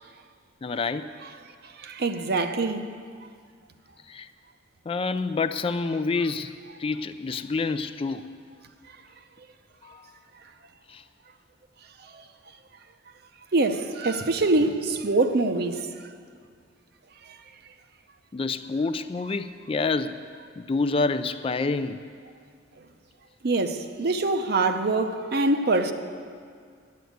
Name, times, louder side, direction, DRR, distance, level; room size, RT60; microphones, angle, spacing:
voice 1, 0.6-1.1 4.1-4.3 4.9-6.5 6.8-8.4 9.8-10.1 10.9-11.0 18.3-20.2 20.6-22.0 24.6-24.7, left 3 dB, 30° left, 0.3 m, -28 dB
voice 2, 1.8-2.8 12.1-12.2 13.5-15.9 23.4-25.9, right 2 dB, 55° right, 0.7 m, -24 dB
11.0 x 9.1 x 7.9 m
head